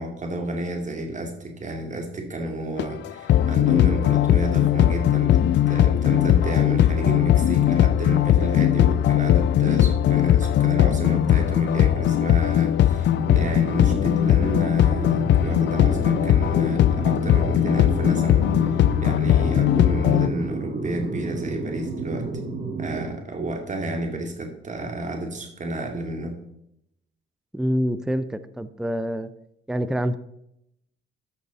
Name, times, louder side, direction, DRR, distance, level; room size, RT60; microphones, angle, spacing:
voice 1, 0.0-22.3 22.8-26.4, right 1 dB, 40° right, 4 dB, 2.5 m, -31 dB
sound 1, 2.8-20.3, left 11 dB, 65° left, 0.5 m, -19 dB
sound 2, 13.2-23.1, right 3 dB, 60° right, 4.6 m, -31 dB
voice 2, 27.5-29.3 29.7-30.2, equal, 5° right, 13 dB, 0.6 m, -26 dB
13.5 x 6.0 x 4.2 m, 0.77 s
cardioid pair, 90°, 20 cm